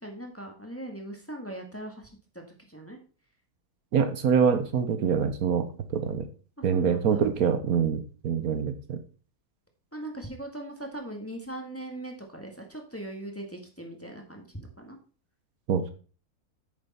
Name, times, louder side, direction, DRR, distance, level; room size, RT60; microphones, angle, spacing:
voice 1, 0.0-2.1 2.3-3.0 6.6-7.2 9.9-15.0, right 1 dB, 10° left, 2 dB, 1.6 m, -40 dB
voice 2, 3.9-6.3 6.6-9.0 15.7-15.9, right 7 dB, 70° right, 9 dB, 1.4 m, -25 dB
9.0 x 6.7 x 4.2 m, 0.38 s
omnidirectional pair, 1.6 m